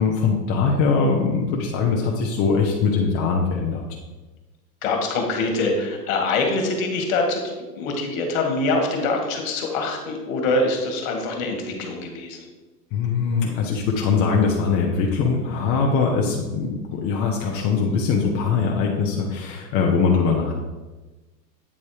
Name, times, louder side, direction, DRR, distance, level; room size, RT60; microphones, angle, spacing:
voice 1, 0.0-3.8 12.9-20.5, left 5 dB, 30° left, -1 dB, 0.8 m, -22 dB
voice 2, 4.8-12.4, left 2 dB, 55° left, 2 dB, 1.9 m, -24 dB
8.6 x 4.2 x 4.8 m, 1.2 s
hypercardioid pair, 135°, 49 cm